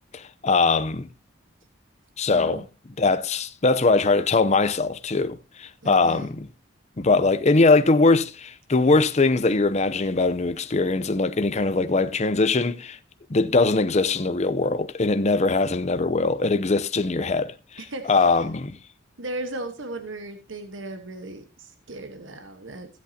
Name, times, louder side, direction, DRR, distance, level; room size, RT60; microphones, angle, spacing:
voice 1, 0.1-1.1 2.2-2.6 3.0-6.5 7.0-13.0 13.3-17.5 18.1-18.8, left 3 dB, 35° left, 0.7 m, -21 dB
voice 2, 2.3-2.6 5.8-6.3 17.8-18.3 19.2-22.9, right 2 dB, 75° right, 1.3 m, -36 dB
16.0 x 8.4 x 2.8 m
head